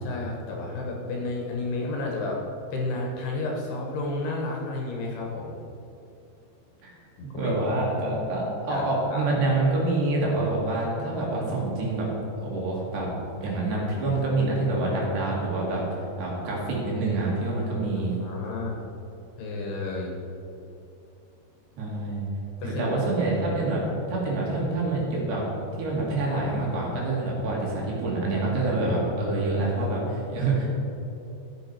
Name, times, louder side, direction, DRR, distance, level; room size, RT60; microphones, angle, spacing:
voice 1, 0.0-2.4 2.7-5.6 7.2-7.6 8.7-9.2 18.2-18.8 19.4-20.1 22.6-22.8, left 2 dB, 70° left, -1 dB, 3.2 m, -31 dB
voice 2, 7.4-12.1 12.4-13.1 13.4-18.2 21.8-22.3 22.6-23.8 24.1-25.4 25.8-30.7, right 2 dB, 65° right, -4 dB, 4.2 m, -26 dB
14.0 x 8.1 x 4.5 m, 2.7 s
omnidirectional pair, 5.3 m